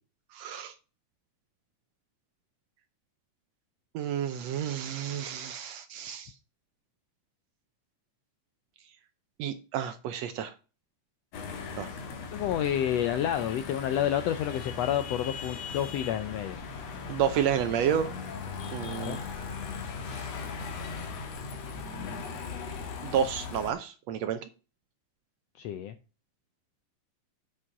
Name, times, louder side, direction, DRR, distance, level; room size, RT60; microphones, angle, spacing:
voice 1, 0.3-0.7 3.9-6.3 9.4-10.5 11.8-11.9 17.1-18.1 18.7-19.2 20.1-20.3 23.0-24.4, right 9 dB, 75° right, 1.6 m, -30 dB
sound 1, 11.3-23.7, left 5 dB, 60° left, 2.6 m, -38 dB
voice 2, 12.3-16.6 18.8-19.2 25.6-25.9, left 10 dB, 80° left, 1.5 m, -29 dB
7.8 x 6.2 x 5.8 m
omnidirectional pair, 3.6 m